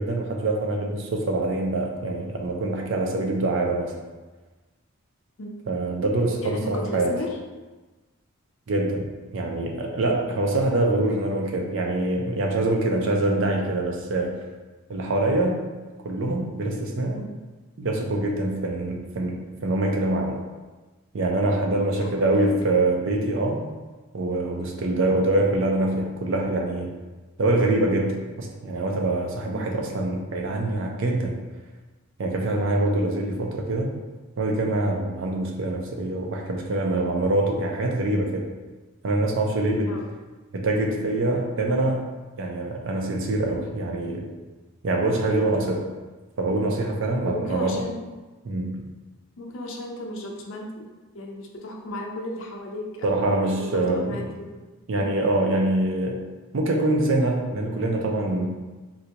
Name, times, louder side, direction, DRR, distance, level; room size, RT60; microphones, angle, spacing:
voice 1, 0.0-3.9 5.7-7.2 8.7-14.3 14.9-15.6 16.0-17.2 17.8-20.4 21.1-23.7 24.1-26.9 27.4-31.4 32.2-34.0 34.4-38.5 39.0-40.0 40.5-42.0 42.4-44.3 44.8-45.8 46.4-47.8 48.5-48.8 53.0-54.1 54.9-56.2 56.5-58.5, right 2 dB, 60° right, 1 dB, 0.4 m, -24 dB
voice 2, 6.4-7.3 17.1-17.3 21.7-22.5 29.5-29.7 39.9-40.1 47.2-48.0 49.4-50.9 51.1-53.3 53.6-54.6 54.9-55.1, left 1 dB, 60° left, 1 dB, 0.5 m, -34 dB
3.8 x 2.2 x 2.8 m, 1.2 s
head